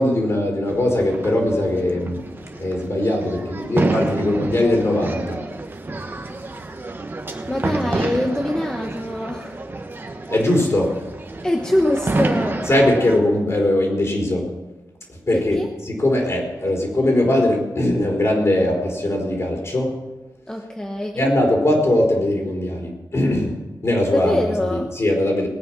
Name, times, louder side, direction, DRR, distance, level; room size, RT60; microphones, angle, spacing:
voice 1, 0.0-5.4 7.8-7.9 10.3-11.0 12.7-14.5 15.1-15.6 15.8-20.0 21.1-25.5, left 1 dB, 40° left, 0 dB, 4.3 m, -20 dB
sound 1, 0.7-13.2, right 2 dB, 30° right, 1.4 m, -29 dB
voice 2, 7.5-9.6 11.4-12.7 15.3-15.7 20.5-21.3 24.1-24.9, left 1 dB, 10° left, 2 dB, 1.0 m, -24 dB
20.5 x 9.0 x 6.0 m, 1.1 s
wide cardioid pair, 140°, 7 cm